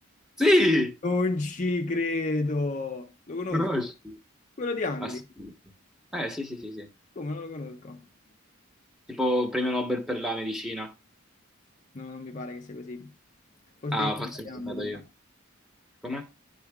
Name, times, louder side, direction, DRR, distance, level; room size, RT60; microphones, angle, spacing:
voice 1, 0.4-0.9 3.5-4.2 5.4-5.5 6.1-6.9 9.1-10.9 13.9-15.0 16.0-16.2, left 1 dB, ahead, 1.1 m, -27 dB
voice 2, 1.0-3.7 4.6-5.2 7.2-8.1 11.9-13.1 13.8-15.1, left 2 dB, 35° left, 0.6 m, -31 dB
11.0 x 3.9 x 3.6 m
head